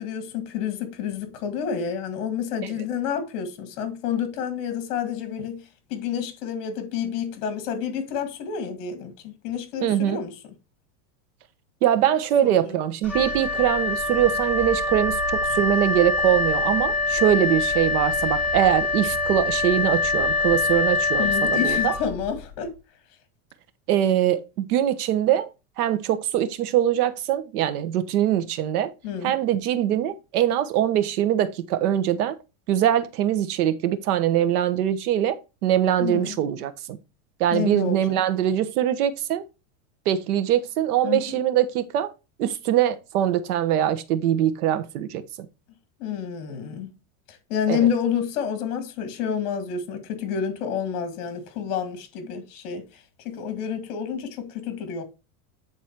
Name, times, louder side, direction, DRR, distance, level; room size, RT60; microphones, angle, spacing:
voice 1, 0.0-5.6 5.9-10.3 12.4-12.8 21.2-22.7 29.0-29.4 36.0-36.3 37.5-38.2 41.0-41.4 46.0-46.9 47.3-55.0, left 8 dB, 55° left, 2.1 m, -29 dB
voice 2, 9.8-10.2 11.8-21.9 23.9-25.5 25.8-28.9 29.2-32.4 32.7-37.0 37.4-39.4 40.1-42.1 42.4-45.2 47.7-47.9, right 11 dB, 80° right, 1.2 m, -23 dB
Wind instrument woodwind instrument, 13.0-22.5, left 3 dB, 5° left, 3.4 m, -24 dB
9.0 x 4.0 x 4.5 m
supercardioid pair, 170°, 45 cm